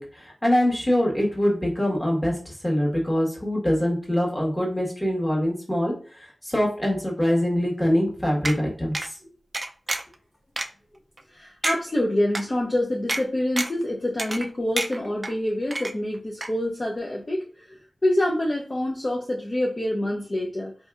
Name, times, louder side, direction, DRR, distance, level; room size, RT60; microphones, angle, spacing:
voice 1, 0.0-9.0, equal, 15° left, -2 dB, 1.3 m, -24 dB
sound 1, 8.4-8.6 8.9-9.1 9.5-10.1 10.6-10.7 11.2-11.3 11.6-11.8 12.3-12.4 13.1-13.2 13.6-13.8 14.2-14.5 14.8-15.3 15.7-16.2 16.4-16.5, right 2 dB, 35° right, 0.4 m, -28 dB
voice 2, 11.3-20.7, left 1 dB, 35° left, -2 dB, 0.5 m, -26 dB
4.2 x 2.7 x 2.4 m, 0.40 s
wide cardioid pair, 90°, 0 cm